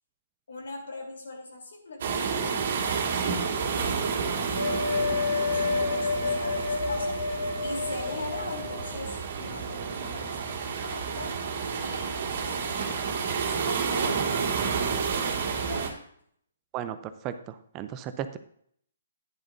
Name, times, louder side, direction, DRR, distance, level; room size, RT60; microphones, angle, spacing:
voice 1, 0.5-11.4 11.8-15.2 15.7-15.9, left 2 dB, 70° left, 0 dB, 3.3 m, -41 dB
sound 1, 2.0-15.9, right 6 dB, 50° right, 2.0 m, -30 dB
sound 2, 4.6-9.0, left 4 dB, 90° left, 3.9 m, -29 dB
voice 2, 16.7-18.4, right 10 dB, 25° right, 10 dB, 0.6 m, -35 dB
10.5 x 10.0 x 2.7 m, 0.65 s
figure-of-eight pair, 135°, 0 cm